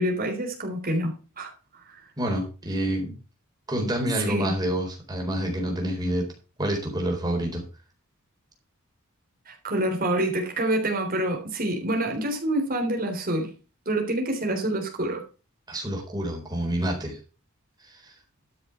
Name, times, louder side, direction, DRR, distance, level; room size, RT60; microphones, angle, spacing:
voice 1, 0.0-1.5 4.3-4.5 9.5-13.5 13.9-15.2, right 1 dB, 40° right, 3.5 m, -27 dB
voice 2, 2.2-3.1 3.7-6.3 6.6-7.6 15.7-17.2 18.0-18.1, right 1 dB, 20° right, 4.1 m, -28 dB
12.5 x 6.6 x 5.9 m
head